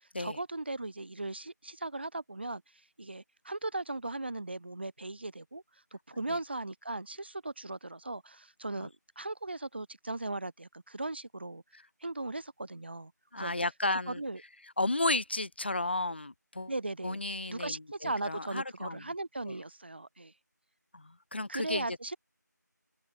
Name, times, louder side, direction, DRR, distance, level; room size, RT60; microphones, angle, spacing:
voice 1, 0.2-2.6 3.0-5.6 5.9-11.6 12.0-13.5 13.9-14.4 16.7-17.2 17.5-20.3 21.5-22.2, right 2 dB, 35° right, 4.2 m, -38 dB
voice 2, 13.3-14.2 14.8-16.7 17.0-19.0 19.5-19.6 20.9-22.0, left 2 dB, 35° left, 5.3 m, -33 dB
open air
figure-of-eight pair, 170°, 10 cm